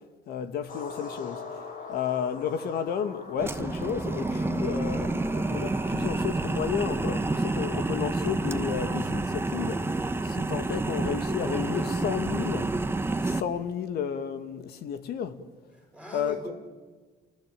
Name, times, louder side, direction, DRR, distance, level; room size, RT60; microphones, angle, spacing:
voice 1, 0.3-1.4 1.9-12.8 13.2-15.4 16.1-16.5, left 8 dB, 70° left, 2.0 m, -32 dB
sound 1, 0.7-11.4, left 4 dB, 50° left, 3.8 m, -45 dB
sound 2, 3.4-13.4, right 2 dB, 15° right, 1.2 m, -29 dB
voice 2, 11.4-11.9 15.7-16.5, equal, 5° left, 5.3 m, -41 dB
28.5 x 19.5 x 9.1 m
cardioid pair, 110°, 17 cm